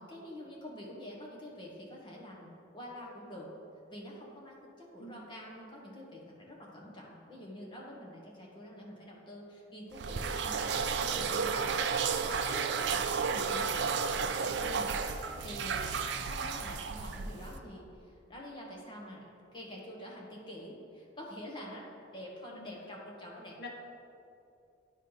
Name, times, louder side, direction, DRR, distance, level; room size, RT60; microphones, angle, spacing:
voice 1, 0.0-3.5 3.9-11.8 12.1-16.0 16.3-21.9 22.1-23.7, left 1 dB, 25° left, -3 dB, 1.1 m, -47 dB
sound 1, 9.9-17.6, right 5 dB, 65° right, 0.4 m, -32 dB
voice 2, 10.9-11.5 16.3-16.5 22.5-22.7 23.6-23.7, left 1 dB, 60° left, -2 dB, 1.1 m, -47 dB
9.2 x 3.1 x 5.5 m, 2.6 s
head